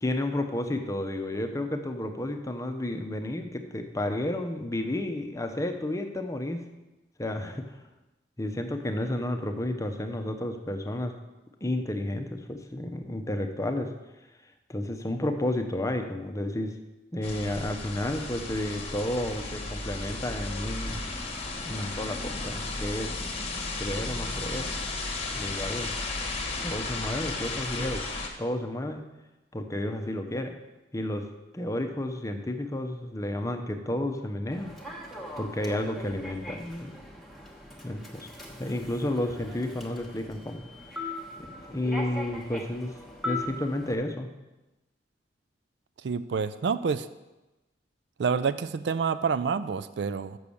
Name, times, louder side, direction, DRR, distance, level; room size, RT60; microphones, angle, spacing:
voice 1, 0.0-6.7 7.2-7.6 8.4-11.2 11.6-13.9 14.7-16.8 17.1-21.1 21.7-23.1 23.8-24.7 25.4-25.9 26.6-28.0 28.4-29.1 29.5-30.6 30.9-31.3 31.5-34.7 35.4-37.0 37.8-38.3 38.6-40.6 41.0-41.1 41.4-42.9 43.2-44.3, left 1 dB, 20° left, 5 dB, 0.7 m, -31 dB
sound 1, 17.2-28.3, left 2 dB, 35° left, 1.1 m, -34 dB
Human voice / Subway metro underground, 34.5-43.9, left 1 dB, ahead, 1.2 m, -40 dB
voice 2, 46.0-47.1 48.2-50.4, right 5 dB, 65° right, 13 dB, 0.4 m, -28 dB
6.7 x 6.2 x 7.0 m, 1.0 s
head